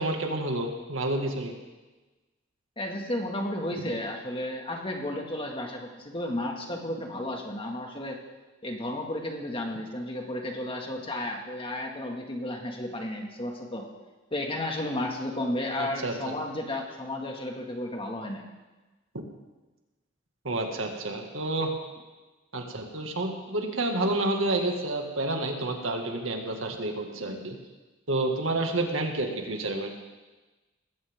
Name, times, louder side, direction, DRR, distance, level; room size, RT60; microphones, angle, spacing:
voice 1, 0.0-1.5 15.8-16.3 20.4-21.7 22.5-27.6 28.1-29.9, right 2 dB, 85° right, 3 dB, 2.1 m, -29 dB
voice 2, 2.8-8.2 8.6-13.9 14.3-18.5, left 1 dB, 30° left, 1 dB, 2.2 m, -33 dB
19.5 x 16.5 x 3.8 m, 1.2 s
head